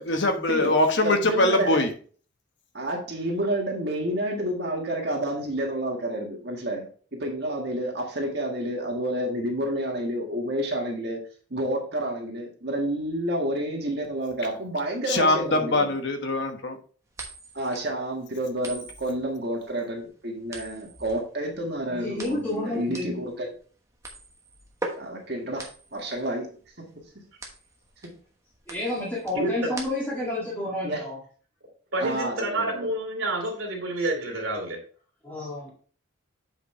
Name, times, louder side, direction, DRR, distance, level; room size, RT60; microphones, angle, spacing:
voice 1, 0.1-1.9 15.1-16.8, left 2 dB, 55° left, 5 dB, 1.1 m, -22 dB
voice 2, 1.0-1.8 2.7-11.2 11.5-16.0 17.5-23.5 24.9-26.5 26.8-27.0 28.0-28.2 30.8-31.0 32.0-32.9, right 1 dB, 50° right, 0 dB, 1.7 m, -29 dB
sound 1, 17.1-30.3, right 2 dB, 15° right, 1.1 m, -41 dB
voice 3, 21.9-23.2 28.7-31.2 35.2-35.7, left 1 dB, 10° left, -7 dB, 1.8 m, -30 dB
voice 4, 29.3-29.7 31.9-34.8, right 2 dB, 75° right, 0 dB, 2.7 m, -28 dB
7.7 x 5.5 x 3.2 m, 0.41 s
head